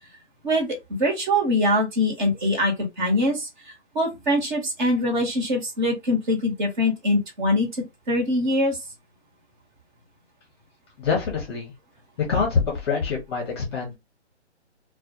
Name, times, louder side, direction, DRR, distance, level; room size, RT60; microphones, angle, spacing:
voice 1, 0.4-7.7 8.1-8.8, left 1 dB, 40° right, 1.0 m, -23 dB
voice 2, 11.0-11.7 12.3-14.0, left 5 dB, 25° left, 0.7 m, -25 dB
2.2 x 2.1 x 2.7 m
hypercardioid pair, 150°, 35 cm